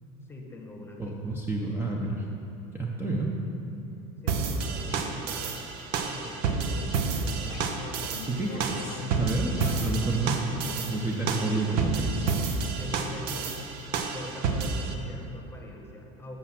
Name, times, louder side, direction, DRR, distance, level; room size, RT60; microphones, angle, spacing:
voice 1, 0.3-1.2 4.1-5.6 6.0-7.6 7.9-8.1 12.8-13.6 14.0-16.4, left 1 dB, 15° left, 1 dB, 1.2 m, -43 dB
voice 2, 1.0-2.2 2.7-3.3 8.3-10.4 10.9-12.3, right 2 dB, 15° right, -2 dB, 0.9 m, -29 dB
sound 1, 4.3-14.9, right 5 dB, 70° right, 0.8 m, -30 dB
sound 2, 6.7-13.1, left 10 dB, 75° left, 0.5 m, -44 dB
8.2 x 6.0 x 6.1 m, 3.0 s
supercardioid pair, 105°, 17 cm